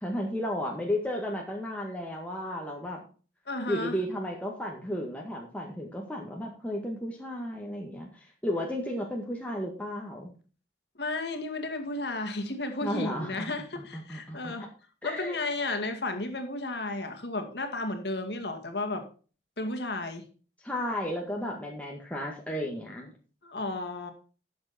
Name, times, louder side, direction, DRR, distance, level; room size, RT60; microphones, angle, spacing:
voice 1, 0.0-3.0 3.7-10.3 12.8-13.3 13.8-14.7 15.0-15.4 20.6-23.1, left 1 dB, 10° left, -1 dB, 1.8 m, -33 dB
voice 2, 3.5-4.0 11.0-14.7 15.0-19.0 19.6-20.3 23.4-24.1, left 2 dB, 65° left, 6 dB, 2.2 m, -33 dB
12.5 x 7.9 x 4.3 m, 0.38 s
head